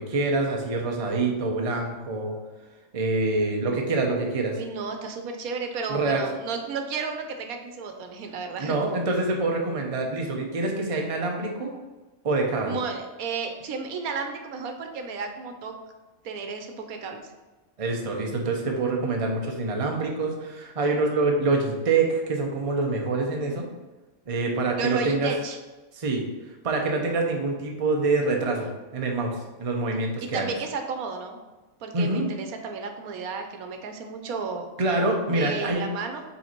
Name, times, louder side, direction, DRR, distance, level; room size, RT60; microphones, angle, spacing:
voice 1, 0.0-2.3 2.9-4.6 5.9-6.2 8.6-11.7 12.2-12.8 17.8-23.7 24.3-25.3 25.9-26.3 26.6-30.5 31.9-32.3 34.8-35.8, right 3 dB, 30° right, 1 dB, 0.7 m, -26 dB
voice 2, 4.5-8.8 12.7-15.7 16.2-17.2 24.8-25.6 30.2-31.4 31.8-34.7 35.3-36.2, right 4 dB, 85° right, 5 dB, 1.2 m, -33 dB
5.5 x 3.9 x 4.4 m, 1.1 s
omnidirectional pair, 1.5 m